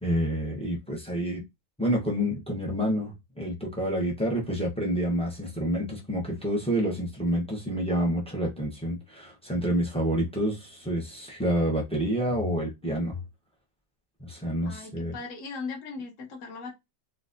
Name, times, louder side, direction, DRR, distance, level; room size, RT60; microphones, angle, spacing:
voice 1, 0.0-1.4 1.8-13.2 14.2-15.1, equal, 10° left, 0.3 m, -28 dB
voice 2, 14.6-16.8, left 4 dB, 55° left, 1.3 m, -38 dB
3.9 x 2.3 x 2.5 m
omnidirectional pair, 1.8 m